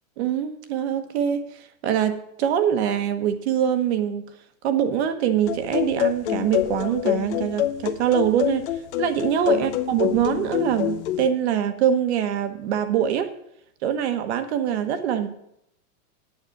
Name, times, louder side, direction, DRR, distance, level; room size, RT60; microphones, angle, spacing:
voice 1, 0.2-4.3 4.6-8.7 9.0-13.3 13.8-15.3, right 9 dB, 45° right, 8 dB, 1.3 m, -24 dB
sound 1, 5.5-11.3, left 11 dB, 45° left, 0.8 m, -26 dB
9.9 x 8.6 x 6.0 m, 0.77 s
supercardioid pair, 165°, 47 cm